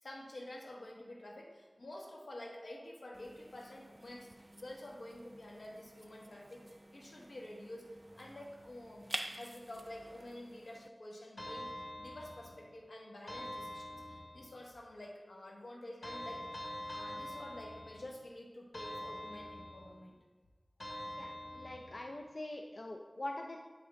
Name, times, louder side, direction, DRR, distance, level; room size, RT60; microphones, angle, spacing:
voice 1, 0.0-4.3 4.5-7.9 8.1-16.6 16.9-20.1, left 1 dB, 85° left, -1 dB, 1.4 m, -49 dB
sound 1, 3.1-10.9, right 1 dB, 25° right, 0.3 m, -49 dB
sound 2, 11.4-12.7 13.3-14.6 16.0-18.2 18.7-20.0 20.8-22.1, left 1 dB, 70° left, 1.3 m, -45 dB
voice 2, 21.2-23.6, left 1 dB, 50° left, 2 dB, 0.5 m, -43 dB
8.4 x 6.3 x 3.4 m, 1.3 s
wide cardioid pair, 65°, 0 cm